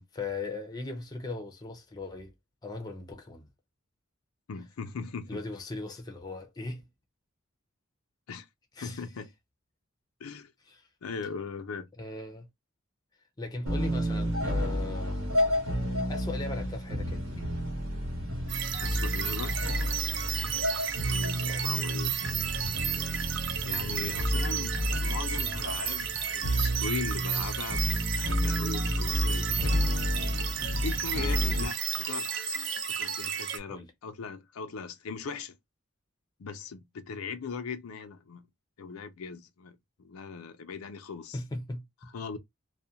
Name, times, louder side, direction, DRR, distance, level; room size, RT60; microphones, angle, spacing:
voice 1, 0.1-2.3 2.6-3.5 5.3-6.9 8.7-9.0 10.7-10.9 12.0-12.5 13.4-15.3 16.1-17.5 21.4-21.6 31.2-31.4 33.7-33.9 41.3-42.1, left 3 dB, 20° left, 0.5 m, -39 dB
voice 2, 4.5-5.4 8.3-8.5 8.8-9.3 10.2-10.5 11.0-11.9 18.8-19.6 21.0-22.1 23.6-24.8 25.0-27.8 28.2-29.8 30.7-32.5 32.9-35.5 36.4-38.4 38.8-41.4 42.1-42.4, left 5 dB, 90° left, 0.5 m, -39 dB
sound 1, 13.7-31.6, equal, 85° right, 1.0 m, -30 dB
sound 2, 18.5-33.6, right 8 dB, 55° right, 0.4 m, -33 dB
2.4 x 2.1 x 2.7 m
head